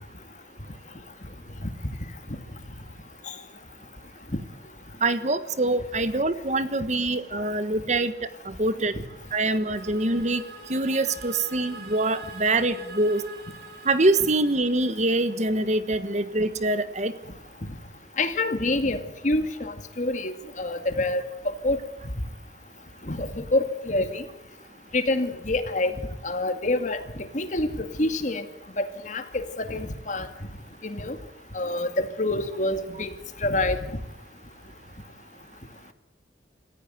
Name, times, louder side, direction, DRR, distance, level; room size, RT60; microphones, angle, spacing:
voice 1, 5.0-8.1 8.4-8.9 9.3-10.4 10.7-13.2 13.8-17.1, right 2 dB, 40° right, 12 dB, 1.4 m, -24 dB
sound 1, 8.5-15.6, right 3 dB, 60° right, 4.2 m, -46 dB
voice 2, 18.2-21.2 21.6-21.8 23.1-24.2 24.9-28.4 28.8-30.3 30.8-31.2 31.5-33.1 33.4-33.8, left 2 dB, 45° left, 9 dB, 2.1 m, -27 dB
27.5 x 15.0 x 9.2 m, 0.98 s
head